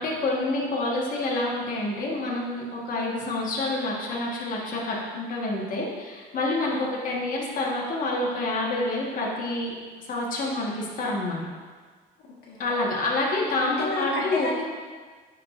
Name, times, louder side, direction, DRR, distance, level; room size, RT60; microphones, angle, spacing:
voice 1, 0.0-9.7 10.0-11.4 12.6-14.5, left 2 dB, 55° left, -4 dB, 1.4 m, -28 dB
voice 2, 12.2-12.6 13.6-14.6, left 2 dB, 75° left, -4 dB, 1.4 m, -32 dB
10.5 x 4.7 x 2.5 m, 1.5 s
cardioid pair, 110°, 17 cm